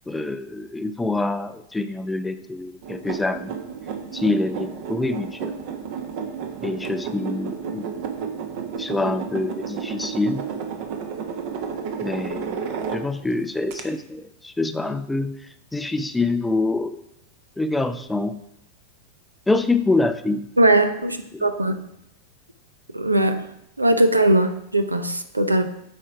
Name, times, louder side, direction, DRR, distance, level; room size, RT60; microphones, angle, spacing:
voice 1, 0.1-3.5 4.1-5.5 6.6-7.9 8.8-10.5 12.0-12.6 12.9-15.4 15.7-17.0 17.6-18.4 19.5-20.4 21.3-21.5, left 2 dB, 5° left, 10 dB, 0.5 m, -25 dB
sound 1, 2.8-13.3 13.7-13.8, right 6 dB, 50° right, 1.0 m, -32 dB
voice 2, 20.6-21.8 22.9-23.4 23.8-25.6, right 1 dB, 85° right, 9 dB, 0.6 m, -20 dB
8.2 x 4.4 x 4.8 m, 0.77 s
figure-of-eight pair, 90°, 0 cm